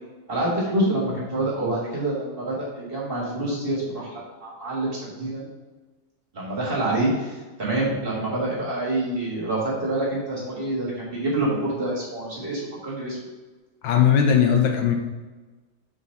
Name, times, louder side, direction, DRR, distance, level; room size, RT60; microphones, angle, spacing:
voice 1, 0.3-5.5 6.3-13.2, right 1 dB, 30° right, -6 dB, 1.8 m, -27 dB
voice 2, 13.8-14.9, left 8 dB, 75° left, 4 dB, 1.3 m, -18 dB
4.9 x 3.9 x 5.3 m, 1.2 s
omnidirectional pair, 2.2 m